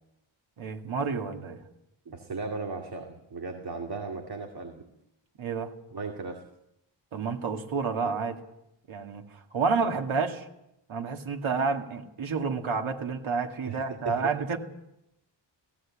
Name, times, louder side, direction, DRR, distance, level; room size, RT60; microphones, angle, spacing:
voice 1, 0.6-1.6 5.4-5.7 7.1-8.4 8.9-10.5 10.9-14.6, right 5 dB, 85° right, 3 dB, 2.4 m, -30 dB
voice 2, 2.1-4.8 5.9-6.4 13.6-13.8 14.0-14.3, right 4 dB, 50° right, 2 dB, 2.5 m, -36 dB
18.5 x 16.5 x 8.7 m, 0.83 s
wide cardioid pair, 110°, 47 cm